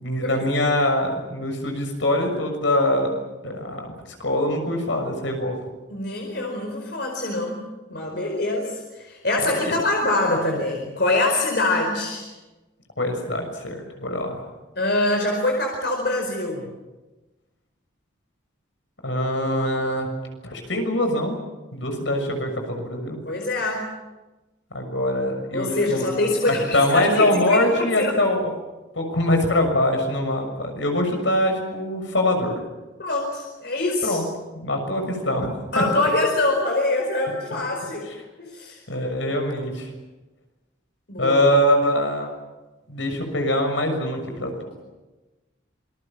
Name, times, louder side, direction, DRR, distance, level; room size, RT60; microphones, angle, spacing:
voice 1, 0.0-3.1 3.4-3.9 4.2-5.5 9.4-9.8 13.0-14.5 19.0-20.1 20.4-21.4 21.7-23.2 24.7-28.4 28.9-32.6 34.0-34.2 34.5-35.8 38.9-39.9 41.2-42.3 42.9-44.7, left 1 dB, 75° left, 4 dB, 6.6 m, -23 dB
voice 2, 5.9-7.6 7.9-12.3 14.8-16.7 23.3-23.9 25.5-27.7 28.0-28.1 33.0-34.2 35.7-38.1 38.4-38.8 41.1-41.4, left 2 dB, 60° left, 1 dB, 4.8 m, -24 dB
27.0 x 22.5 x 7.5 m, 1.1 s
head